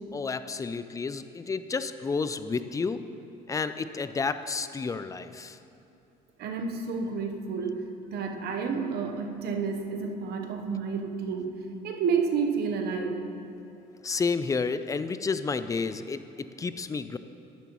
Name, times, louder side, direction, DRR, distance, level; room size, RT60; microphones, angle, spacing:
voice 1, 0.1-3.0 3.5-5.6 14.0-17.2, left 4 dB, 20° left, 12 dB, 0.4 m, -31 dB
voice 2, 6.4-11.6 11.8-13.2, right 5 dB, 70° right, 4 dB, 1.0 m, -30 dB
10.5 x 10.0 x 3.1 m, 2.8 s
cardioid pair, 110°, 17 cm